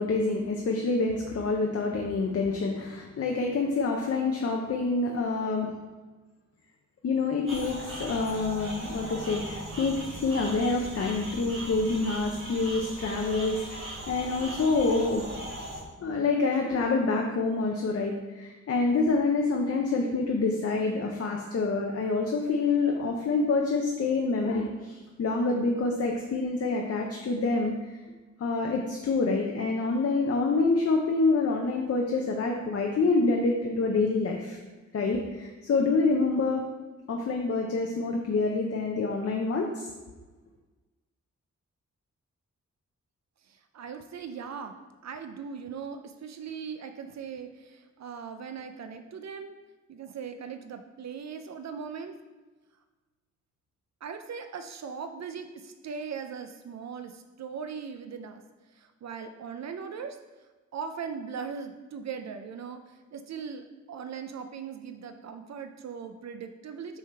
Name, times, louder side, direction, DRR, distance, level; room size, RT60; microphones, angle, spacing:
voice 1, 0.0-5.7 7.0-15.5 16.0-27.7 28.4-34.6 34.9-36.6 37.1-39.9, left 3 dB, 50° left, 1 dB, 0.6 m, -27 dB
sound 1, 7.5-15.8, right 1 dB, 45° right, 1.4 m, -39 dB
voice 2, 43.5-44.7 45.0-49.5 49.9-52.1 54.0-58.4 58.7-60.2 60.7-67.0, right 6 dB, 60° right, 7 dB, 0.4 m, -39 dB
6.2 x 3.7 x 4.3 m, 1.2 s
wide cardioid pair, 170°, 30 cm